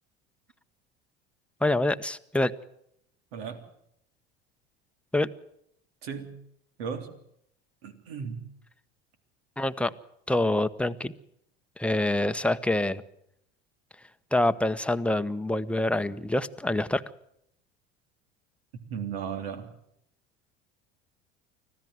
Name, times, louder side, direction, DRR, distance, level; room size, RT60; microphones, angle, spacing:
voice 1, 1.6-2.5 5.1-5.3 9.6-9.9 10.3-11.1 11.8-13.0 14.3-17.0, left 1 dB, 5° left, 11 dB, 1.1 m, -26 dB
voice 2, 3.3-3.6 6.0-6.3 6.8-7.1 7.8-8.4 18.9-19.7, right 7 dB, 70° right, 7 dB, 3.3 m, -35 dB
25.0 x 16.0 x 7.9 m, 0.75 s
hypercardioid pair, 75°, 31 cm